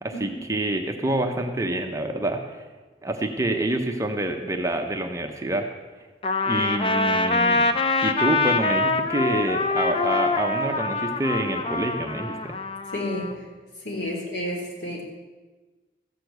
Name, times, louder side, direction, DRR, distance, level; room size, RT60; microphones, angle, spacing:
voice 1, 0.0-2.6 3.0-5.7 6.4-7.7 8.0-12.5, right 1 dB, 15° right, 4 dB, 0.9 m, -27 dB
Trumpet, 6.2-13.3, left 3 dB, 30° left, 0.6 m, -24 dB
voice 2, 12.9-13.3 13.8-15.0, left 1 dB, 75° left, -1 dB, 3.4 m, -30 dB
14.5 x 6.8 x 7.9 m, 1.3 s
head